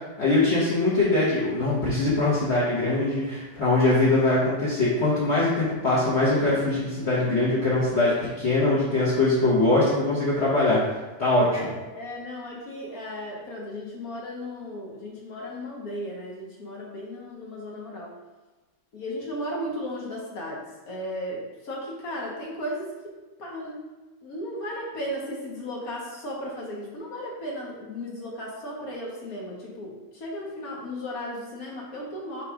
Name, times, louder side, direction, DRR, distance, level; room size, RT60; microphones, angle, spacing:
voice 1, 0.2-11.7, left 2 dB, 40° left, -9 dB, 1.3 m, -22 dB
voice 2, 11.5-18.1 18.9-23.1 23.4-23.8 24.2-32.4, equal, 60° left, -3 dB, 1.5 m, -35 dB
6.6 x 3.1 x 4.8 m, 1.2 s
omnidirectional pair, 1.8 m